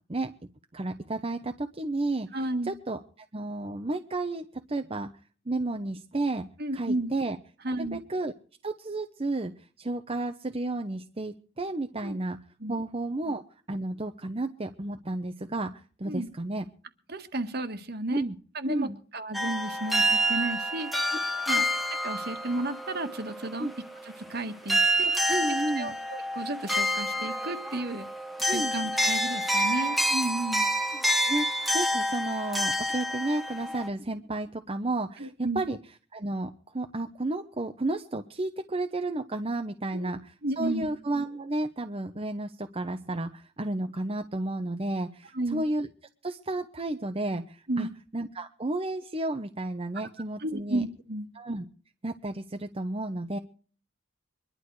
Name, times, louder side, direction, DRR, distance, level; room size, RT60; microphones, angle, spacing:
voice 1, 0.7-3.0 3.3-5.1 5.5-6.5 6.7-7.4 7.7-8.3 8.6-9.5 9.8-12.4 12.7-13.4 13.7-15.7 16.0-16.6 18.1-18.3 18.6-19.0 21.5-21.6 23.6-23.7 25.3-26.0 28.5-28.7 31.0-31.5 31.7-35.8 36.1-45.9 46.2-47.9 48.1-50.8 51.4-51.6 52.0-53.4, right 2 dB, 30° right, 5 dB, 0.8 m, -32 dB
voice 2, 2.3-2.7 6.6-7.1 7.6-8.0 12.0-12.2 12.6-12.7 16.1-16.3 17.1-18.2 18.5-21.1 21.5-21.6 22.0-23.7 24.0-25.1 25.8-28.1 28.4-30.7 35.2-35.6 39.9-40.1 40.4-40.9 45.3-45.6 47.7-47.9 49.9-50.1 50.4-51.3, right 2 dB, 55° right, 8 dB, 1.7 m, -33 dB
sound 1, 19.3-24.3 24.7-33.9, equal, ahead, 1.3 m, -28 dB
23.5 x 11.5 x 4.8 m, 0.42 s
head